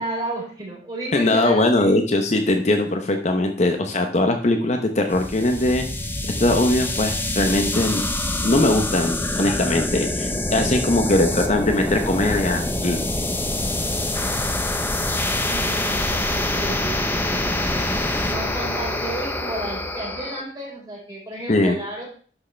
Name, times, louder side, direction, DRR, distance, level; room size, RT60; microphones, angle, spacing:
voice 1, 0.0-2.0 15.5-17.8 18.2-22.1, right 1 dB, 25° right, -5 dB, 4.5 m, -32 dB
voice 2, 1.1-6.0 6.4-8.0 8.4-13.0 21.5-21.8, left 1 dB, 40° left, 5 dB, 0.8 m, -20 dB
sound 1, 5.1-20.4, left 1 dB, 15° left, 0.8 m, -25 dB
11.5 x 6.4 x 3.3 m, 0.43 s
head